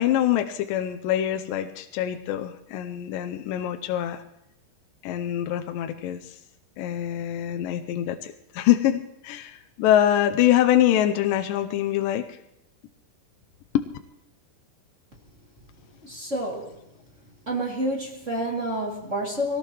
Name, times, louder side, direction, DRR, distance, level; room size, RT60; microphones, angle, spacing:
voice 1, 0.0-4.2 5.0-6.4 6.8-12.3 13.7-13.9, left 12 dB, 80° left, 6 dB, 2.1 m, -24 dB
voice 2, 16.0-16.8 17.5-19.6, right 1 dB, 25° right, -3 dB, 1.9 m, -29 dB
24.0 x 18.5 x 3.1 m, 0.86 s
omnidirectional pair, 4.6 m